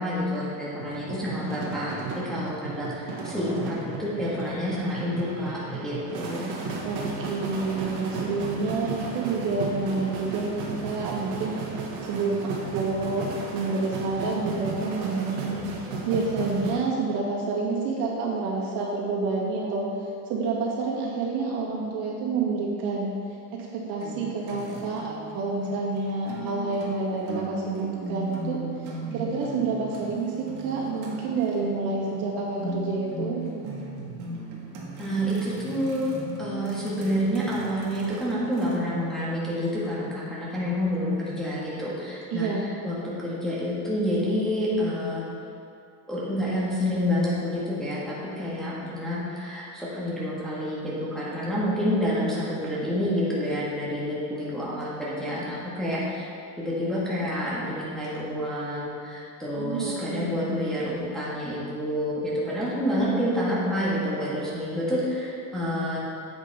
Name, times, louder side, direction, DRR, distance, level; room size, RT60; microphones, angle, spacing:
voice 1, 0.0-2.0 2.2-6.6 35.0-36.1 36.4-42.5 42.8-45.2 46.1-56.3 56.6-66.0, equal, ahead, -9 dB, 1.5 m, -28 dB
sound 1, 0.8-16.8, right 4 dB, 85° right, 1.8 m, -35 dB
voice 2, 7.3-11.6 12.1-19.9 20.3-23.1 23.7-28.6 29.1-33.4 42.3-42.6 59.6-60.6, right 3 dB, 70° right, -4 dB, 2.2 m, -28 dB
sound 2, 24.0-38.8, right 2 dB, 50° right, 1.7 m, -38 dB
9.9 x 8.2 x 3.4 m, 2.5 s
cardioid pair, 170°, 41 cm